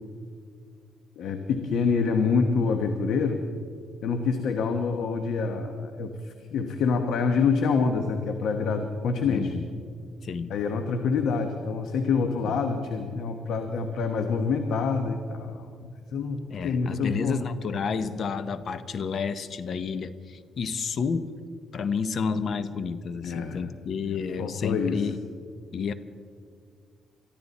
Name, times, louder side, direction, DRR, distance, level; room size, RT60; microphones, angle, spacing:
voice 1, 1.2-3.4 4.0-9.5 10.5-17.4 23.2-23.7 24.0-24.1 24.4-25.1, left 5 dB, 75° left, 6 dB, 1.1 m, -26 dB
voice 2, 9.3-9.7 10.0-10.5 12.4-12.5 16.5-21.3 21.7-25.2 25.7-25.9, left 5 dB, 55° left, 13 dB, 0.8 m, -30 dB
23.0 x 14.0 x 4.2 m, 2.2 s
cardioid pair, 90°, 0 cm